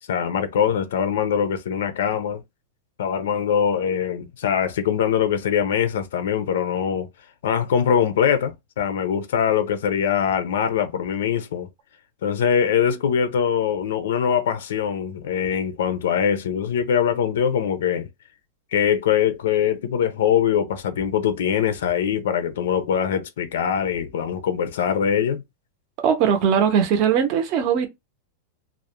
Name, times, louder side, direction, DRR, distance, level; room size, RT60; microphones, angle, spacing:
voice 1, 0.1-2.4 3.0-7.1 7.4-11.7 12.2-18.1 18.7-25.4, left 8 dB, 85° left, 0.5 m, -22 dB
voice 2, 26.0-27.9, right 7 dB, 35° right, 0.5 m, -20 dB
2.3 x 2.0 x 2.9 m
supercardioid pair, 170°, 0 cm